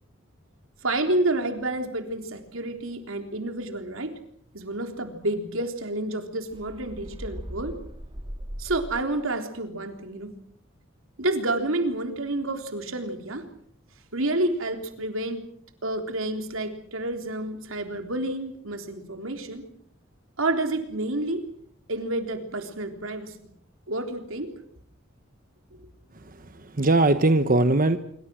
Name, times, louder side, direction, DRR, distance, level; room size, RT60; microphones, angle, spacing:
voice 1, 0.8-4.2 4.5-7.8 8.6-10.3 11.2-13.5 14.1-15.5 15.8-19.7 20.4-21.5 21.9-23.5 23.9-24.5, right 2 dB, 90° right, 6 dB, 3.7 m, -29 dB
sound 1, 6.5-9.3, equal, 25° right, 2.3 m, -39 dB
voice 2, 26.1-28.0, right 2 dB, 45° right, 10 dB, 1.2 m, -21 dB
26.0 x 24.5 x 6.3 m, 0.65 s
head